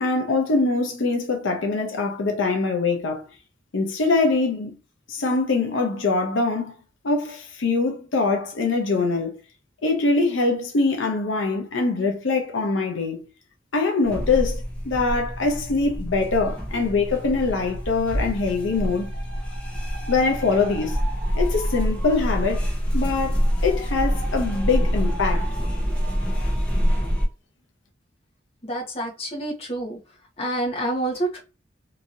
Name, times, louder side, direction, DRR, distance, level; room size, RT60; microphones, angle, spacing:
voice 1, 0.0-3.2 3.7-4.8 5.1-6.7 7.0-9.4 9.8-13.3 13.7-19.1 20.1-21.0 21.3-25.5, left 3 dB, 85° left, 0.6 m, -23 dB
sound 1, 14.0-27.3, equal, 5° left, 0.7 m, -26 dB
voice 2, 28.6-30.0 30.4-31.4, right 1 dB, 30° left, 1.0 m, -28 dB
2.9 x 2.7 x 2.6 m
head